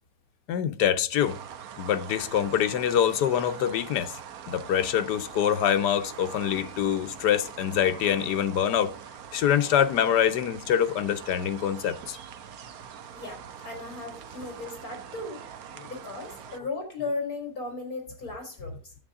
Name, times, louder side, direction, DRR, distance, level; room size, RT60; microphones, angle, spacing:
voice 1, 0.5-1.4 1.8-4.1 4.5-8.9 9.3-12.2, left 9 dB, 90° left, 1.4 m, -25 dB
sound 1, 1.2-16.6, right 8 dB, 65° right, 1.2 m, -43 dB
voice 2, 13.6-15.4 15.9-18.8, left 3 dB, 60° left, 4.4 m, -36 dB
9.9 x 8.1 x 3.6 m
omnidirectional pair, 1.8 m